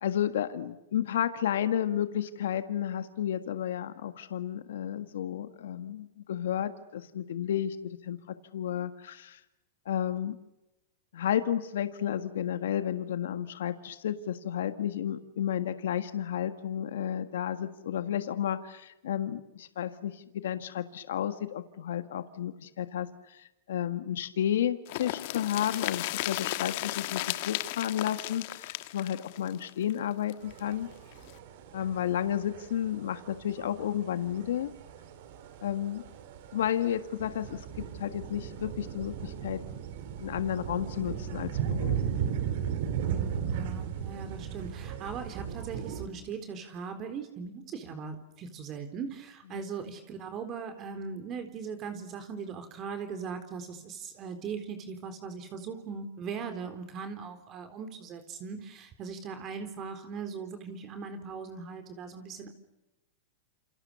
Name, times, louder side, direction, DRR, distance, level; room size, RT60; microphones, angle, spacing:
voice 1, 0.0-8.2 8.5-9.4 9.8-10.4 11.1-30.9 31.7-34.7 35.6-36.0 36.5-39.6 40.2-42.1, left 10 dB, 75° left, 10 dB, 1.6 m, -32 dB
sound 1, 24.9-30.6 30.9-31.0 31.3-31.4, left 18 dB, 60° left, 1.4 m, -35 dB
sound 2, 30.4-46.1, right 8 dB, 60° right, 4.3 m, -36 dB
voice 2, 43.0-62.5, right 5 dB, 35° right, 8 dB, 4.0 m, -39 dB
29.5 x 28.5 x 7.0 m, 0.95 s
hypercardioid pair, 115°, 0 cm